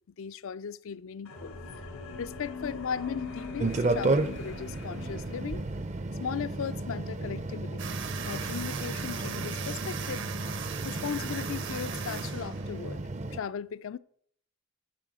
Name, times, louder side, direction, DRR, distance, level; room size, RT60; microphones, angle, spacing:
voice 1, 0.2-1.6 2.2-5.6 6.2-7.9 8.2-10.3 10.8-13.0 13.3-14.0, left 7 dB, 65° left, 0.4 m, -37 dB
sound 1, 1.3-5.9, left 4 dB, 90° left, 2.5 m, -41 dB
sound 2, 3.6-13.4, right 2 dB, 30° right, 0.5 m, -33 dB
sound 3, 7.8-13.0, right 7 dB, 55° right, 0.8 m, -39 dB
7.6 x 7.4 x 6.1 m
head